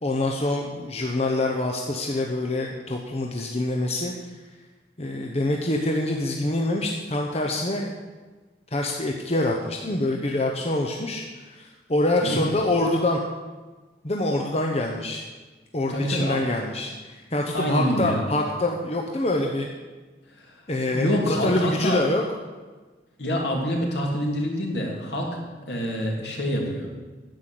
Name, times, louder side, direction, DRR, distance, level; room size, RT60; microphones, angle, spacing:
voice 1, 0.0-4.3 5.0-7.9 8.7-13.2 14.0-15.2 15.7-19.7 20.7-22.2, left 2 dB, 35° left, 1 dB, 0.9 m, -25 dB
voice 2, 12.2-12.5 15.9-16.4 17.5-18.2 20.4-20.5 20.9-22.0 23.2-25.4 25.7-26.9, equal, 70° left, -1 dB, 2.8 m, -26 dB
10.5 x 8.3 x 7.7 m, 1.3 s
head